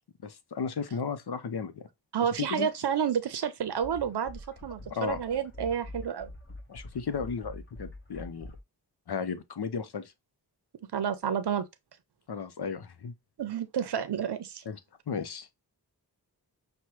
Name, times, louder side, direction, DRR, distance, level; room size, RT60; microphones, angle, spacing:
voice 1, 0.2-1.9 2.2-2.7 4.9-5.2 6.7-8.5 9.1-10.1 12.3-13.1 14.7-14.8 15.1-15.5, left 6 dB, 75° left, 0.7 m, -34 dB
voice 2, 2.1-6.3 10.9-11.6 13.4-14.6, right 8 dB, 80° right, 0.6 m, -30 dB
sound 1, 3.7-8.6, left 1 dB, 30° left, 1.2 m, -45 dB
5.8 x 2.2 x 3.1 m
wide cardioid pair, 50°, 39 cm